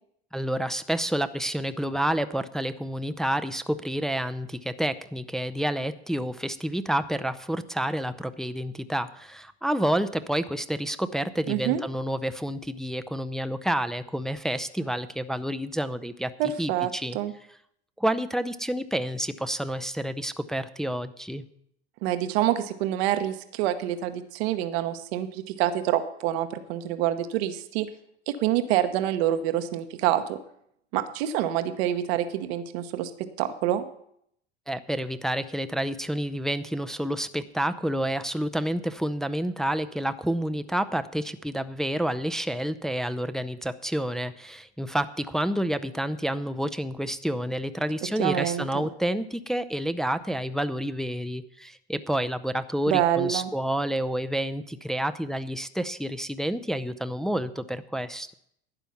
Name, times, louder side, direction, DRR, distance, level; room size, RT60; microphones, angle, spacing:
voice 1, 0.3-16.3 16.6-17.2 18.0-21.4 34.7-58.3, right 1 dB, ahead, 10 dB, 0.5 m, -29 dB
voice 2, 11.5-11.8 16.4-17.3 22.0-27.9 28.3-30.4 30.9-33.8 48.2-48.8 52.9-53.5, right 12 dB, 70° right, 9 dB, 1.0 m, -27 dB
12.0 x 9.2 x 5.7 m, 0.71 s
hypercardioid pair, 90°, 33 cm